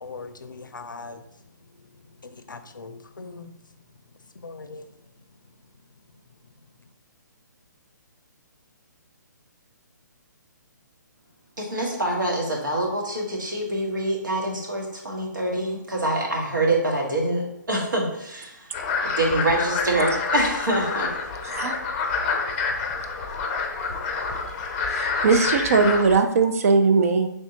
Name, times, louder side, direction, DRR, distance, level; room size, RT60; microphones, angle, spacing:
voice 1, 0.0-1.2 1.9-3.5 4.3-5.1, left 4 dB, 80° left, 9 dB, 0.5 m, -40 dB
voice 2, 11.6-18.7 19.0-21.1, right 1 dB, 75° right, -1 dB, 1.4 m, -25 dB
sound 1, 18.7-26.2, left 4 dB, 30° left, 0.6 m, -27 dB
voice 3, 21.4-21.8 24.9-27.3, right 4 dB, 45° right, 7 dB, 0.5 m, -20 dB
5.4 x 3.5 x 2.8 m, 0.85 s
figure-of-eight pair, 135°, 10 cm